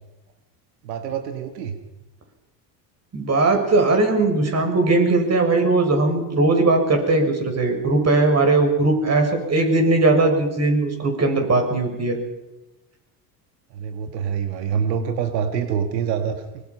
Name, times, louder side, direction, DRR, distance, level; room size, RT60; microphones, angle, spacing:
voice 1, 0.8-1.8 13.7-16.6, right 7 dB, 85° right, 7 dB, 1.8 m, -26 dB
voice 2, 3.1-12.2, right 2 dB, 30° right, 4 dB, 6.9 m, -19 dB
24.0 x 23.0 x 5.6 m, 1.0 s
hypercardioid pair, 80°, 49 cm